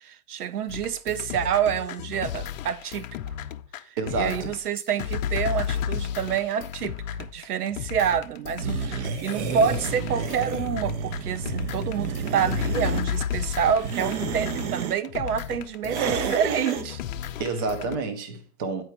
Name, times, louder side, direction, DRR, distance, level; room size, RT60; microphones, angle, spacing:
voice 1, 0.0-3.1 4.1-7.0 7.3-17.0, right 8 dB, 80° right, 0.7 m, -27 dB
sound 1, 0.7-18.0, left 9 dB, 60° left, 0.7 m, -33 dB
voice 2, 4.0-4.5 17.4-18.8, right 4 dB, 15° right, 0.3 m, -29 dB
sound 2, 8.6-13.1 13.7-15.0 15.9-16.9, right 6 dB, 50° right, 0.9 m, -30 dB
9.1 x 4.5 x 4.3 m
hypercardioid pair, 120°, 45 cm